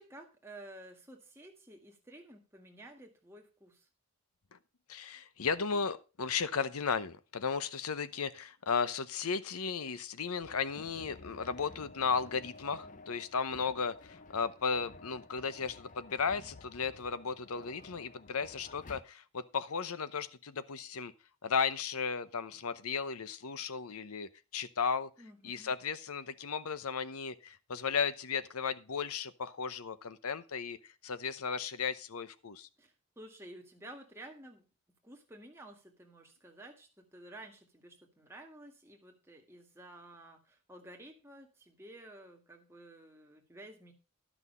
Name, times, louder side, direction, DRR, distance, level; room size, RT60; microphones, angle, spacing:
voice 1, 0.0-3.8 25.2-25.7 32.8-34.7 35.0-43.9, right 1 dB, 10° right, 1 dB, 1.8 m, -52 dB
voice 2, 4.9-21.1 21.4-25.1 25.4-32.7, left 5 dB, 80° left, 15 dB, 0.8 m, -35 dB
sound 1, 10.4-19.0, left 3 dB, 35° left, 0.5 m, -53 dB
11.5 x 6.1 x 5.4 m, 0.32 s
head